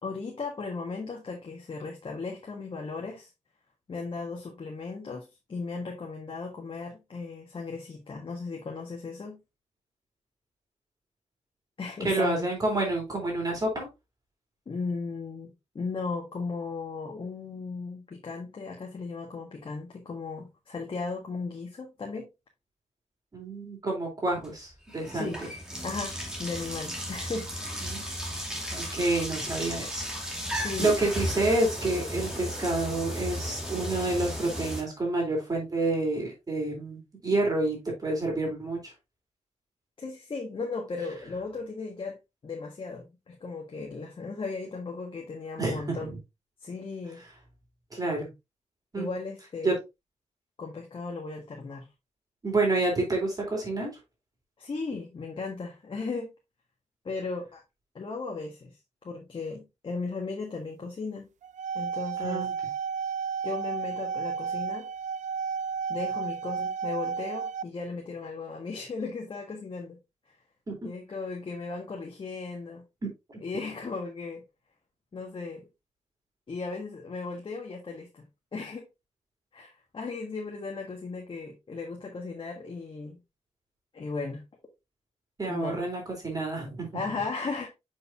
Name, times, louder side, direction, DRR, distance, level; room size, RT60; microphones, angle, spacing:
voice 1, 0.0-3.3 3.9-9.4 11.8-12.5 14.7-22.3 25.1-25.4 25.8-27.5 30.5-31.0 40.0-42.2 42.4-46.1 46.6-47.2 49.0-49.8 50.6-51.9 54.6-56.3 57.0-57.6 57.9-58.8 59.0-61.3 61.7-62.5 63.4-64.9 65.9-70.0 70.8-72.8 73.4-74.4 75.1-75.7 76.5-78.3 78.5-78.8 79.5-83.2 83.9-84.4 85.5-85.8 86.9-87.7, left 4 dB, 45° left, 1.6 m, -36 dB
voice 2, 12.0-13.9 23.3-25.5 27.8-28.1 28.7-30.1 30.4-38.9 45.6-46.0 47.9-48.3 48.9-49.1 49.6-49.7 52.4-53.9 62.2-62.5 85.4-87.2, right 2 dB, 30° right, 3.5 m, -29 dB
sound 1, 24.3-24.5 24.9-34.8, equal, 5° right, 2.6 m, -35 dB
sound 2, 61.4-67.6, right 6 dB, 85° right, 0.4 m, -32 dB
7.8 x 5.2 x 2.7 m
wide cardioid pair, 115°, 12 cm